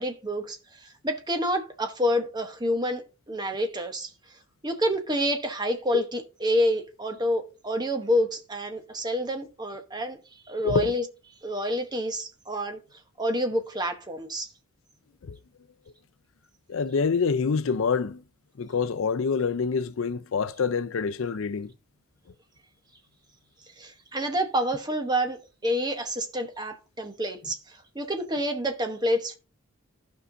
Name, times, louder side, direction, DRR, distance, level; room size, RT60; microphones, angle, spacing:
voice 1, 0.0-4.4 4.6-11.1 11.4-14.5 23.8-29.4, equal, 20° right, 0.9 m, -28 dB
voice 2, 10.6-11.0 15.2-15.4 16.7-18.2 18.6-21.7, left 5 dB, 70° left, 0.5 m, -26 dB
15.0 x 5.6 x 2.6 m
head